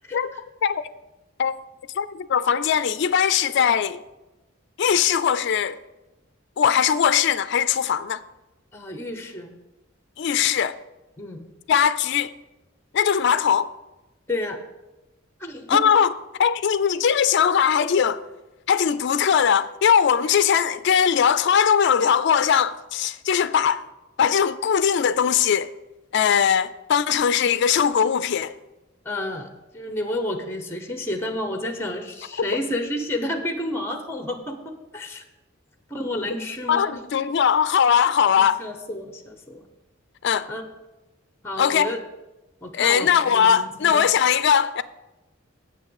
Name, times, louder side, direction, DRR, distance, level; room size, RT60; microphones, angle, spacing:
voice 1, 2.0-4.0 4.8-5.8 6.6-8.2 10.2-10.8 11.7-12.3 12.9-13.7 15.7-16.1 16.4-18.2 18.7-23.8 24.2-25.7 26.1-28.5 36.7-38.6 40.2-40.5 41.6-41.9 42.7-44.8, left 8 dB, 60° left, 0.4 m, -20 dB
voice 2, 8.7-9.6 11.2-11.5 14.3-14.6 15.4-15.9 29.0-35.2 35.9-37.0 38.4-39.7 40.5-40.7 41.4-42.0 42.6-44.1, left 1 dB, 15° left, 0.8 m, -30 dB
7.7 x 6.4 x 7.1 m
head